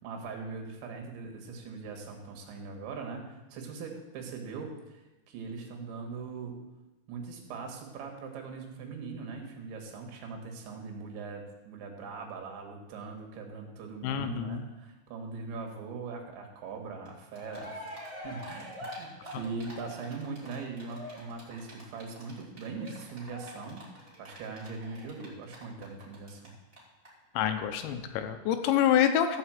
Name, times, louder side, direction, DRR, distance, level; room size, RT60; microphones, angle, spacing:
voice 1, 0.0-5.0 5.3-6.6 7.1-17.8 18.2-23.8 24.2-26.5, right 4 dB, 75° right, 2 dB, 3.9 m, -41 dB
voice 2, 14.0-14.6 27.3-29.4, left 10 dB, 80° left, 8 dB, 3.1 m, -27 dB
Cheering, 17.1-17.2 17.3-26.5 26.7-26.8 27.0-27.1, equal, 15° right, 2.2 m, -45 dB
14.0 x 5.6 x 7.5 m, 1.0 s
omnidirectional pair, 5.3 m